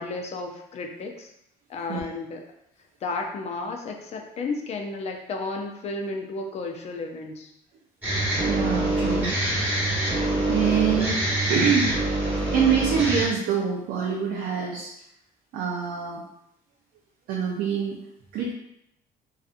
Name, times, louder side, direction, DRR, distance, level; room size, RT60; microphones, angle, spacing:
voice 1, 0.0-1.3 1.7-2.4 3.0-7.5, left 3 dB, 40° left, 2 dB, 0.4 m, -33 dB
sound 1, 8.0-13.2, right 1 dB, 10° right, 1.1 m, -25 dB
voice 2, 8.4-9.4 10.5-11.2 11.5-12.0 12.5-14.9 15.5-16.2 17.3-18.0 18.3-18.5, right 7 dB, 75° right, -3 dB, 0.5 m, -25 dB
2.6 x 2.3 x 2.4 m, 0.79 s
cardioid pair, 110°, 17 cm